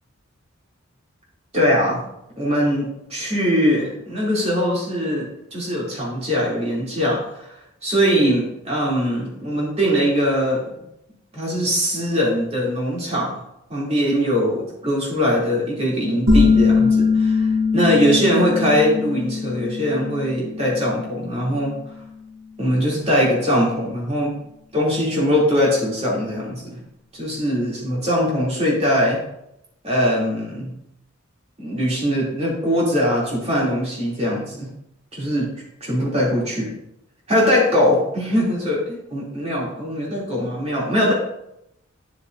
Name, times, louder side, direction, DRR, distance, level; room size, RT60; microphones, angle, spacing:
voice 1, 1.5-2.0 2.4-7.2 7.8-10.8 11.3-13.4 13.7-21.8 22.6-24.3 24.7-26.6 27.1-29.2 29.8-30.7 31.6-34.7 35.1-35.5 35.8-36.7 37.3-41.1, equal, 30° right, -5 dB, 2.8 m, -21 dB
sound 1, 16.3-21.7, left 4 dB, 75° right, 2.5 m, -21 dB
9.7 x 7.4 x 2.6 m, 0.82 s
head